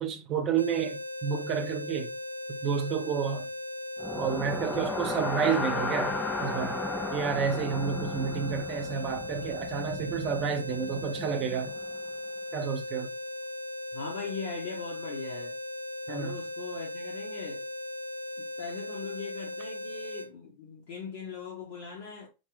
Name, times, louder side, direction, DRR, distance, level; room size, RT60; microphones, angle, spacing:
voice 1, 0.0-2.1 2.5-3.5 4.1-6.8 7.1-11.7 12.5-13.1 16.1-16.4, right 7 dB, 35° right, 0.7 m, -30 dB
sound 1, 0.6-20.3, left 1 dB, 90° right, 0.4 m, -38 dB
sound 2, 4.0-12.0, left 3 dB, 10° left, 0.5 m, -35 dB
voice 2, 13.9-15.6 16.1-17.7 18.4-22.3, left 5 dB, 55° left, 1.0 m, -40 dB
3.7 x 2.0 x 3.9 m
figure-of-eight pair, 90°, 0 cm